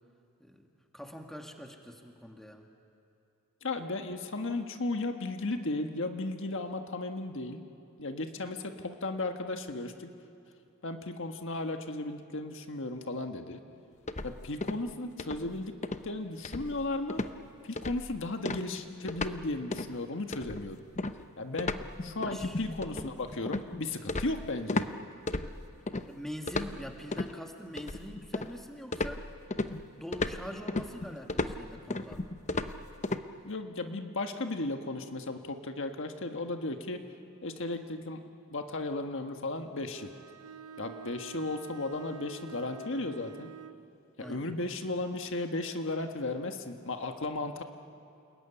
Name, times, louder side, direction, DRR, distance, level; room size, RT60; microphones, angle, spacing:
voice 1, 0.4-2.7 22.2-22.6 26.1-29.2 29.7-32.3 44.2-44.6, equal, ahead, 2 dB, 1.9 m, -44 dB
voice 2, 3.6-7.6 8.0-10.1 10.8-13.6 14.2-15.8 16.0-17.2 17.6-20.8 21.4-21.8 22.0-24.9 33.4-37.0 37.4-38.2 38.5-40.1 40.8-43.5 44.2-47.6, left 2 dB, 60° left, 5 dB, 1.5 m, -35 dB
sound 1, 14.1-14.9 15.2-15.5 15.8-16.1 16.4-16.8 17.1-17.4 17.8-18.1 18.4-19.4 19.7-19.9 20.3-24.9 25.3-26.0 26.5-27.3 27.8-28.6 28.9-33.2, left 2 dB, 30° left, 0.8 m, -34 dB
Bowed string instrument, 39.9-43.9, right 6 dB, 90° right, 0.7 m, -48 dB
29.0 x 20.0 x 10.0 m, 2.7 s
head